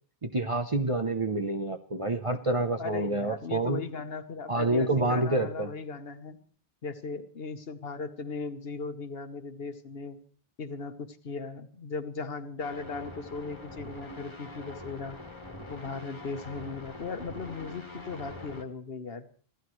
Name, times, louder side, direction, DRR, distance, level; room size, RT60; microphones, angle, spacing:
voice 1, 0.2-3.8 4.5-5.7, right 2 dB, 35° right, 6 dB, 0.9 m, -28 dB
voice 2, 2.8-6.4 6.8-10.2 10.6-15.2 15.7-19.3, left 4 dB, 70° left, 10 dB, 1.4 m, -37 dB
sound 1, 12.6-18.6, left 2 dB, 25° left, 1.8 m, -44 dB
26.0 x 15.0 x 3.2 m, 0.43 s
omnidirectional pair, 1.0 m